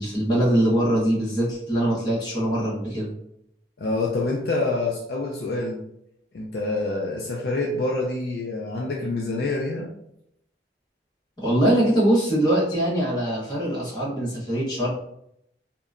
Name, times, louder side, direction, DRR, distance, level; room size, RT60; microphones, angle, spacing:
voice 1, 0.0-3.1 11.4-14.9, right 1 dB, 25° left, -8 dB, 1.1 m, -22 dB
voice 2, 3.8-5.8 6.3-9.9, left 2 dB, 60° left, -2 dB, 0.4 m, -26 dB
2.8 x 2.1 x 2.4 m, 0.76 s
head